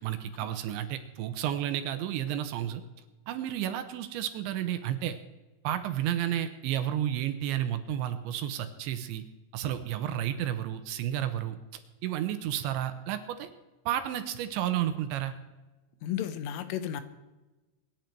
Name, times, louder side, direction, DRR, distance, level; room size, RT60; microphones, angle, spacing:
voice 1, 0.0-2.8 3.3-5.2 5.6-9.2 9.5-11.6 12.0-13.5 13.9-15.3, right 11 dB, 75° right, 10 dB, 3.1 m, -31 dB
voice 2, 16.0-17.0, left 10 dB, 85° left, 12 dB, 3.7 m, -33 dB
24.0 x 10.5 x 4.6 m, 1.1 s
omnidirectional pair, 5.6 m